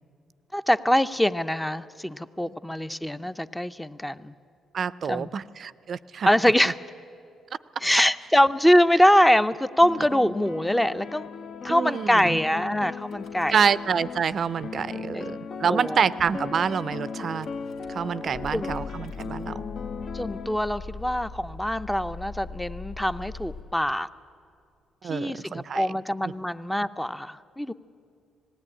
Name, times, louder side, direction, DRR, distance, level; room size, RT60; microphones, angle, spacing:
voice 1, 0.5-4.3 5.1-5.3 6.3-6.7 7.8-11.3 11.6-13.6 15.1-15.2 15.7-16.0 18.5-18.7 20.1-24.1 25.1-27.7, equal, 5° left, 12 dB, 0.6 m, -23 dB
voice 2, 4.7-6.3 6.6-6.7 11.7-12.4 13.5-17.5 17.9-19.6 25.0-25.9 26.2-26.3, right 7 dB, 50° right, 17 dB, 0.5 m, -27 dB
sound 1, 9.8-20.6, left 5 dB, 55° left, 0.6 m, -37 dB
Car / Engine starting / Idling, 13.0-13.8 14.1-14.8 15.5-15.6 15.8-15.9 16.2-16.5 17.4-23.6, left 3 dB, 90° left, 3.7 m, -41 dB
19.0 x 16.0 x 9.8 m, 2.4 s
cardioid pair, 90°, 0 cm